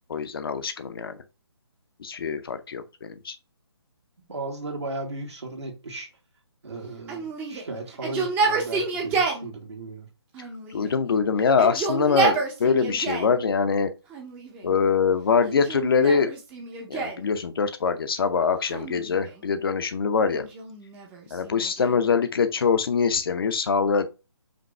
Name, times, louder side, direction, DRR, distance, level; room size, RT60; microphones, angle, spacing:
voice 1, 0.1-1.2 2.0-3.4 10.7-13.9 14.6-16.3 16.9-20.5 21.3-24.1, left 5 dB, 55° left, 0.7 m, -23 dB
voice 2, 4.3-6.1 6.6-10.1, right 3 dB, 85° right, 1.8 m, -36 dB
Yell, 7.1-9.5 10.3-11.1 11.5-13.4 14.1-14.8 15.5-17.3 18.6-19.5 20.3-22.1, right 5 dB, 10° right, 0.6 m, -29 dB
5.1 x 2.6 x 3.2 m
hypercardioid pair, 155°, 14 cm